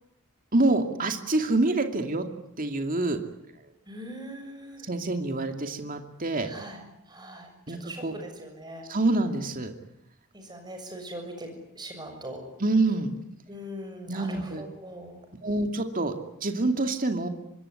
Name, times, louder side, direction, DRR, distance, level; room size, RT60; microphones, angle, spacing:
voice 1, 0.5-2.2 2.6-3.2 4.8-6.5 7.7-8.1 8.9-9.7 12.6-13.1 14.1-14.6 15.4-16.1 16.4-17.3, right 2 dB, 40° right, 6 dB, 2.5 m, -26 dB
voice 2, 3.9-4.9 6.4-6.8 7.1-8.9 10.3-11.5 11.8-12.4 13.5-15.2, equal, 20° right, 4 dB, 6.9 m, -41 dB
26.0 x 21.5 x 9.9 m, 0.79 s
head